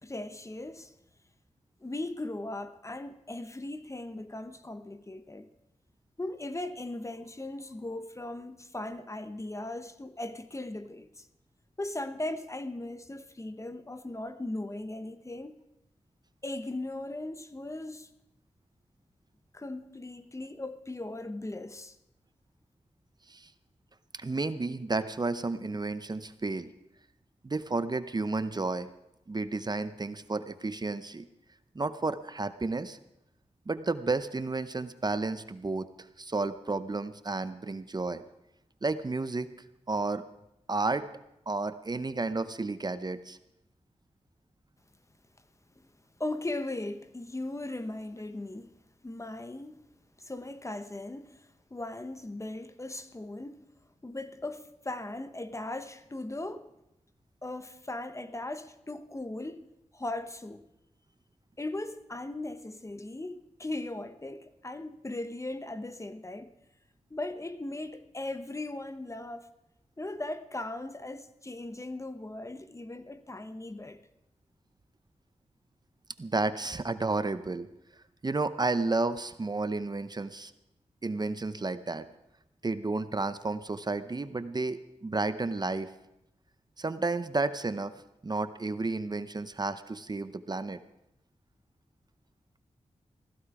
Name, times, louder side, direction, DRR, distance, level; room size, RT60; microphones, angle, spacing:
voice 1, 0.0-0.9 1.8-5.5 6.2-11.3 11.8-15.5 16.4-18.1 19.5-22.0 46.2-48.8 49.0-49.8 50.2-53.7 54.0-56.7 57.4-60.7 61.6-66.5 67.1-69.5 70.0-74.0, left 2 dB, 25° left, 0.9 m, -38 dB
voice 2, 24.1-26.7 27.4-28.9 29.3-31.3 31.7-33.0 33.7-35.9 36.2-38.2 38.8-39.5 39.9-40.2 40.7-41.1 41.5-43.4 76.2-77.7 78.2-80.5 81.0-82.1 82.6-85.9 86.8-87.9 88.2-90.8, right 3 dB, 35° right, 0.7 m, -32 dB
16.0 x 14.5 x 4.8 m
cardioid pair, 60°, 12 cm